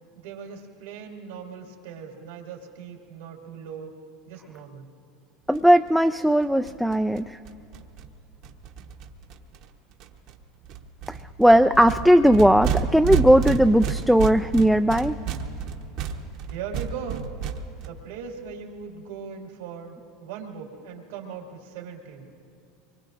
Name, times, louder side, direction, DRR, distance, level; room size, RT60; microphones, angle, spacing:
voice 1, 0.1-4.0 4.3-4.9 16.5-17.3 17.8-22.3, right 7 dB, 80° right, -1 dB, 2.2 m, -39 dB
voice 2, 5.5-7.4 11.1-15.2, equal, ahead, 7 dB, 0.3 m, -18 dB
sound 1, 5.5-5.6 5.9-6.0 6.2-6.3 6.4-9.6 10.0-10.4 10.6-17.9, right 6 dB, 60° right, 1.1 m, -31 dB
24.0 x 23.0 x 2.6 m, 2.6 s
supercardioid pair, 105°, 0 cm